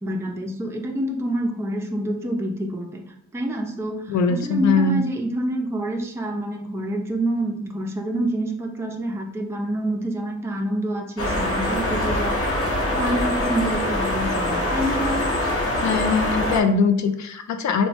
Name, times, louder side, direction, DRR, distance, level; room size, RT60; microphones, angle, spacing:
voice 1, 0.0-3.0 3.3-12.4 12.9-15.3, right 1 dB, 10° right, 1 dB, 0.4 m, -27 dB
voice 2, 4.1-5.0 15.8-17.9, left 4 dB, 65° left, 6 dB, 0.5 m, -21 dB
sound 1, 11.2-16.6, left 1 dB, 45° left, 1.0 m, -24 dB
3.0 x 2.2 x 2.6 m, 0.72 s
cardioid pair, 75°, 31 cm